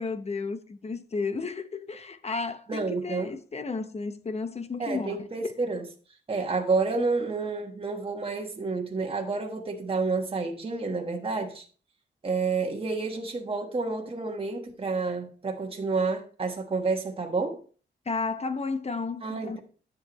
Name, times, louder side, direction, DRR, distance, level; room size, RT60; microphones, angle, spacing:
voice 1, 0.0-5.3 18.1-19.6, left 4 dB, 35° left, 0.9 m, -33 dB
voice 2, 2.7-3.3 4.8-5.8 6.3-11.6 12.2-17.6 19.2-19.6, right 4 dB, 30° right, 1.4 m, -29 dB
10.5 x 7.8 x 3.1 m
wide cardioid pair, 115°, 20 cm